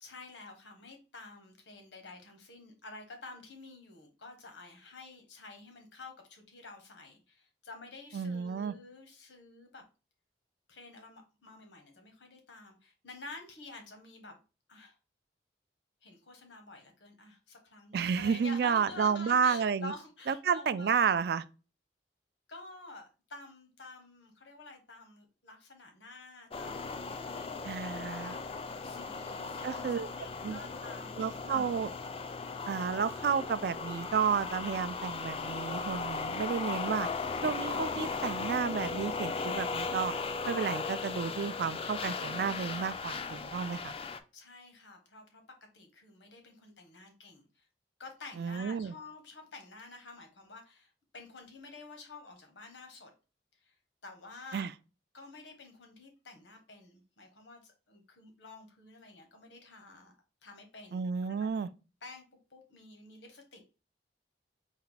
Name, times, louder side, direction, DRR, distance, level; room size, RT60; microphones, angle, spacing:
voice 1, 0.0-9.8 10.7-14.4 14.7-14.9 16.0-21.1 22.5-31.9 44.3-47.7 48.0-53.1 53.6-53.8 54.0-54.7 55.1-60.1 60.4-61.3 62.0-62.2 62.5-63.7, left 3 dB, 85° left, 1.2 m, -50 dB
voice 2, 8.1-8.7 17.9-19.9 20.3-21.4 27.6-28.3 29.6-30.1 30.4-30.6 31.2-31.9 32.7-37.1 37.4-40.1 40.5-43.9 48.4-48.9 54.5-54.7 60.9-61.7, right 6 dB, 60° right, 0.3 m, -31 dB
sound 1, 26.5-44.2, left 4 dB, 30° left, 0.3 m, -37 dB
4.4 x 2.2 x 3.9 m
head